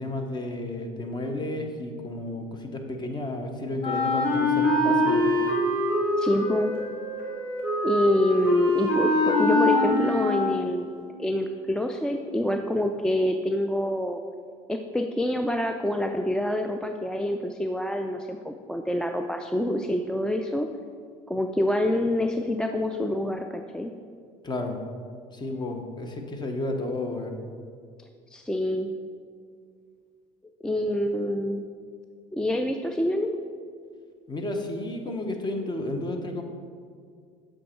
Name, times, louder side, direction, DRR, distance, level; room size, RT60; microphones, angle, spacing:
voice 1, 0.0-5.3 24.4-24.8 25.3-27.4 34.3-36.4, left 2 dB, 25° left, 4 dB, 0.9 m, -32 dB
Wind instrument woodwind instrument, 3.8-10.8, left 1 dB, 65° left, 1.6 m, -24 dB
voice 2, 6.2-6.7 7.8-14.2 14.7-20.7 21.3-23.9 28.3-28.9 30.6-31.7 32.3-33.3, left 1 dB, 5° left, 4 dB, 0.3 m, -26 dB
7.6 x 3.7 x 4.5 m, 2.1 s
hypercardioid pair, 75°, 17 cm